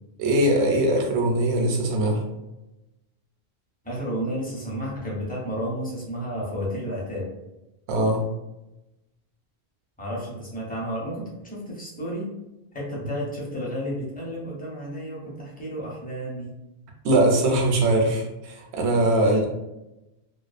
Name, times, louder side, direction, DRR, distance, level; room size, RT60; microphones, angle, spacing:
voice 1, 0.2-2.2 7.9-8.2 17.0-19.5, right 1 dB, 85° right, 1 dB, 0.9 m, -21 dB
voice 2, 3.8-7.3 10.0-12.3 12.7-16.5 19.2-19.5, equal, 10° left, -5 dB, 0.6 m, -32 dB
2.3 x 2.3 x 2.4 m, 0.95 s
omnidirectional pair, 1.1 m